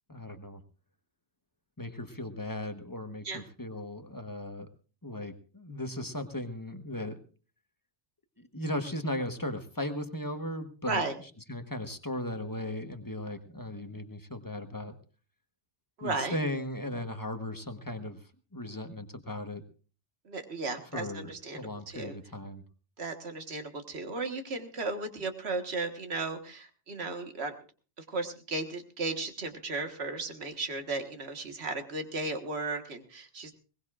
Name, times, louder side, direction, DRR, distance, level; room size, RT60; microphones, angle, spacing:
voice 1, 0.1-0.6 1.8-4.7 5.0-7.2 8.4-11.0 11.5-14.9 16.0-18.2 18.5-19.6 20.9-22.6, left 1 dB, 20° left, 7 dB, 1.1 m, -37 dB
voice 2, 10.9-11.2 16.0-16.4 20.3-22.2 23.0-27.6 28.0-33.5, right 3 dB, 65° right, 6 dB, 1.8 m, -35 dB
21.5 x 19.0 x 2.5 m, 0.37 s
omnidirectional pair, 1.2 m